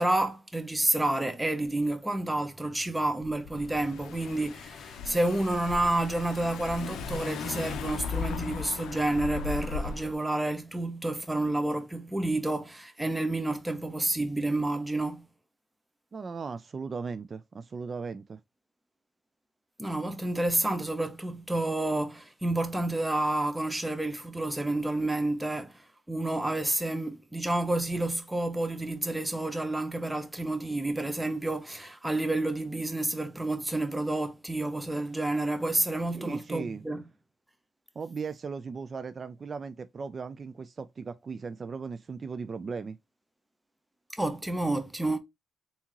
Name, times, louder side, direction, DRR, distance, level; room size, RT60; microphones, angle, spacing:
voice 1, 0.0-15.3 19.8-37.0 44.1-45.2, right 2 dB, 10° right, 0.7 m, -29 dB
Car / Engine, 3.2-10.1, left 5 dB, 75° left, 0.5 m, -37 dB
voice 2, 16.1-18.4 36.1-36.8 38.0-43.0, right 5 dB, 40° right, 0.3 m, -37 dB
3.5 x 2.7 x 2.9 m
cardioid pair, 90°, 0 cm